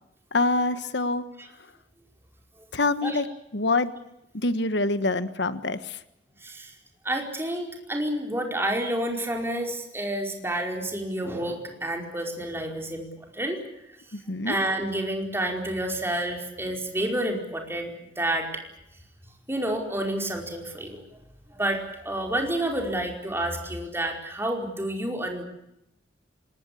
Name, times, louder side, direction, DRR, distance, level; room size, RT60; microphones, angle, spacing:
voice 1, 0.3-1.2 2.7-3.3 3.5-3.9 4.3-6.0 14.1-14.6, left 2 dB, 70° left, 12 dB, 1.4 m, -25 dB
voice 2, 6.4-6.7 7.0-13.1 13.3-13.6 14.4-18.5 19.5-21.0 21.5-25.4, right 1 dB, 15° right, 2 dB, 4.8 m, -29 dB
26.0 x 21.0 x 8.5 m, 0.81 s
head